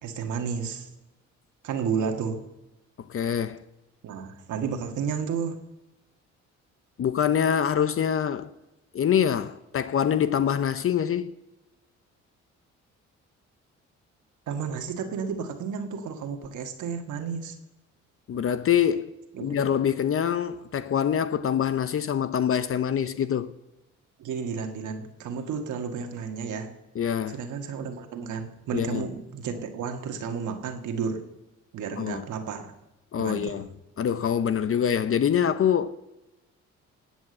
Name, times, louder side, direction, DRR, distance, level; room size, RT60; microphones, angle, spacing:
voice 1, 0.0-0.9 1.6-2.4 4.0-5.6 14.5-17.6 19.3-19.6 24.2-26.7 27.3-31.2 31.7-32.7 33.2-33.6, right 6 dB, 75° right, 1.8 m, -32 dB
voice 2, 3.1-3.6 7.0-8.5 8.9-11.3 18.3-19.1 19.4-23.5 27.0-27.4 28.7-29.0 32.0-32.2 33.1-33.7 34.0-35.9, left 8 dB, 45° left, 0.7 m, -25 dB
18.0 x 6.2 x 7.8 m
cardioid pair, 90°, 30 cm